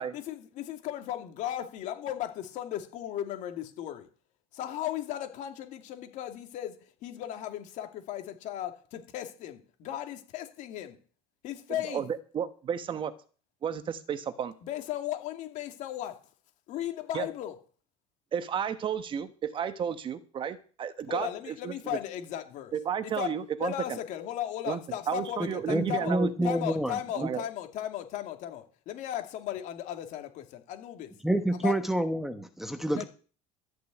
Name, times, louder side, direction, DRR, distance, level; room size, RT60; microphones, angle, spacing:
voice 1, 0.1-4.1 4.5-11.0 11.4-12.0 14.6-16.2 16.7-17.6 21.1-22.7 23.0-26.1 26.4-31.1 31.6-31.7 32.9-33.1, left 12 dB, 55° left, 2.5 m, -36 dB
voice 2, 11.9-13.1 13.6-14.5 17.1-17.3 18.3-21.7 22.7-24.0 24.7-24.8 25.1-26.5 27.1-27.5 32.9-33.0, right 8 dB, 35° right, 1.2 m, -32 dB
voice 3, 25.4-27.3 31.2-33.0, right 1 dB, ahead, 1.2 m, -28 dB
13.5 x 6.7 x 9.2 m
cardioid pair, 135°, 15 cm